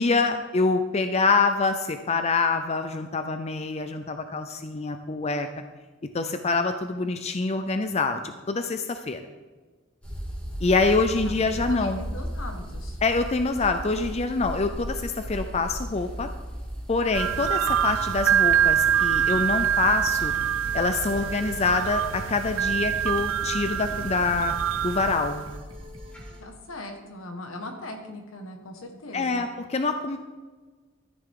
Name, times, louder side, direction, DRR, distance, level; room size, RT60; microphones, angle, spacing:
voice 1, 0.0-5.5 6.1-8.2 8.5-9.2 10.6-12.0 13.0-16.3 16.9-20.3 20.7-24.5 24.8-25.4 29.1-30.2, left 3 dB, 30° left, 8 dB, 0.5 m, -25 dB
sound 1, 10.0-26.3, equal, 5° left, 2.2 m, -38 dB
voice 2, 11.2-13.0 26.4-29.5, left 1 dB, 80° left, 3 dB, 1.8 m, -40 dB
sound 2, 17.1-25.5, right 9 dB, 70° right, 0.3 m, -25 dB
sound 3, 18.7-26.4, equal, 25° right, 1.3 m, -43 dB
13.5 x 10.0 x 3.8 m, 1.4 s
head